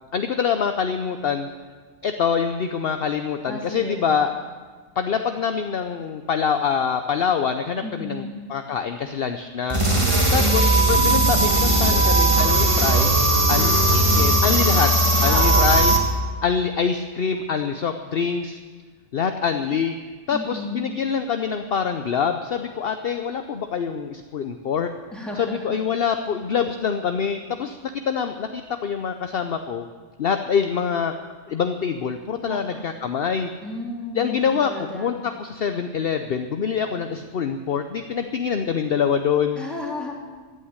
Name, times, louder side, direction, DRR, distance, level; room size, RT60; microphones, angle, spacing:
voice 1, 0.1-1.5 2.0-4.3 5.0-9.8 10.3-14.9 15.2-16.0 16.4-18.6 19.1-19.9 20.3-24.9 25.4-27.8 28.1-29.9 30.2-31.1 31.5-33.5 34.1-39.6, left 6 dB, 55° left, 7 dB, 0.9 m, -25 dB
voice 2, 3.4-4.1 7.8-8.3 10.1-10.6 15.3-15.8 20.3-20.9 25.1-25.8 32.4-32.8 33.6-35.1 39.5-40.1, left 1 dB, ahead, -3 dB, 3.4 m, -33 dB
sound 1, 9.7-16.0, right 2 dB, 25° right, 1.7 m, -18 dB
14.5 x 9.3 x 9.6 m, 1.5 s
omnidirectional pair, 1.3 m